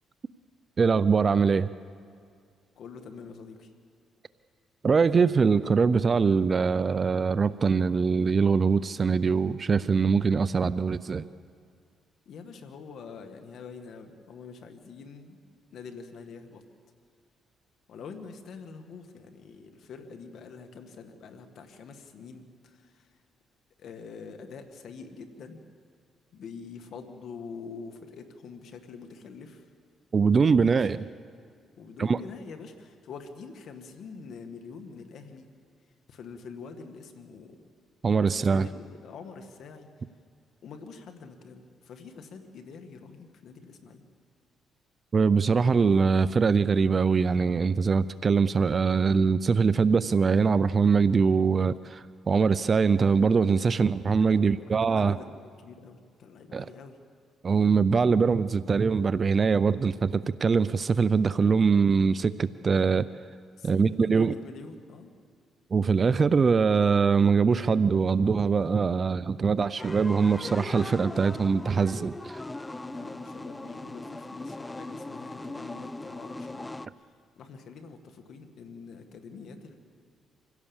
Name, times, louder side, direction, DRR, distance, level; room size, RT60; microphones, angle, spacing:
voice 1, 0.8-1.7 4.8-11.3 30.1-31.0 32.0-32.2 38.0-38.7 45.1-55.1 56.5-56.7 57.4-63.1 63.6-64.3 65.7-72.4, right 5 dB, 40° right, 15 dB, 0.5 m, -23 dB
voice 2, 2.8-3.7 12.3-15.4 15.7-16.6 17.9-23.2 23.8-25.6 26.3-29.7 30.5-31.0 31.8-35.5 36.1-37.6 38.2-39.9 40.6-44.0 54.3-57.0 63.6-65.1 72.9-79.7, left 5 dB, 65° left, 6 dB, 1.9 m, -45 dB
sound 1, 69.8-76.9, left 2 dB, 15° left, 0.6 m, -39 dB
25.5 x 16.5 x 7.2 m, 2.2 s
cardioid pair, 90°, 0 cm